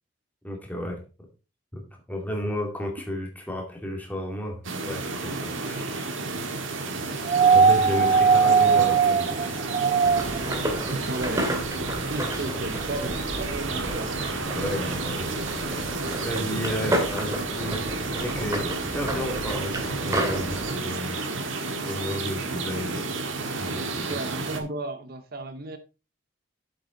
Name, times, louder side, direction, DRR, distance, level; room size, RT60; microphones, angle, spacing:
voice 1, 0.4-1.0 1.7-6.0 7.0-7.1 7.5-9.8 14.6-15.8 16.2-21.2 21.8-24.2, left 1 dB, 10° left, 2.3 m, -33 dB
sound 1, 4.6-24.6, right 3 dB, 75° right, 1.7 m, -31 dB
sound 2, 7.2-10.5 11.9-12.0, right 5 dB, 30° right, 0.4 m, -19 dB
sound 3, 10.0-20.7, right 1 dB, 15° right, 2.0 m, -32 dB
voice 2, 10.9-11.6 12.1-14.1 24.1-25.8, right 2 dB, 50° right, 0.8 m, -34 dB
7.9 x 7.6 x 3.8 m
head